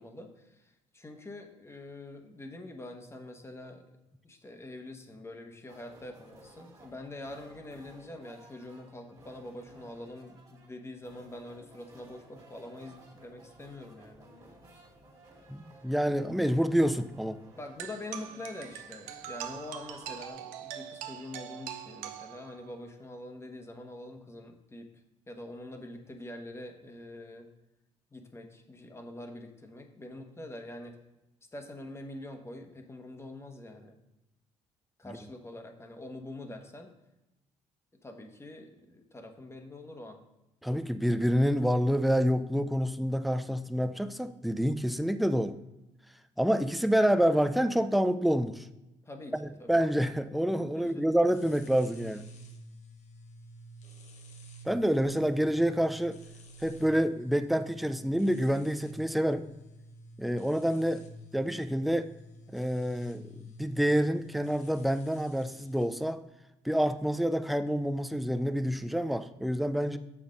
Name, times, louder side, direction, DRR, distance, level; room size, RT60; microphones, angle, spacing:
voice 1, 0.0-3.8 4.2-14.3 17.6-24.9 25.3-27.5 28.1-31.0 31.5-34.0 35.0-36.9 38.0-40.2 49.0-49.8 50.7-51.1, left 1 dB, 20° left, 4 dB, 1.2 m, -45 dB
sound 1, 5.7-20.3, right 1 dB, 25° right, 2.0 m, -56 dB
voice 2, 15.5-17.4 40.6-45.6 46.4-48.7 49.3-52.3 54.7-56.2 56.6-59.5 60.2-61.0 61.3-62.1 62.5-63.3 63.6-66.2 66.6-70.0, equal, ahead, 11 dB, 0.4 m, -27 dB
sound 2, 17.8-22.8, right 10 dB, 85° right, 0.5 m, -43 dB
sound 3, 51.2-65.9, equal, 60° left, 1.0 m, -51 dB
6.9 x 5.8 x 3.8 m, 0.93 s
supercardioid pair, 80°, 13 cm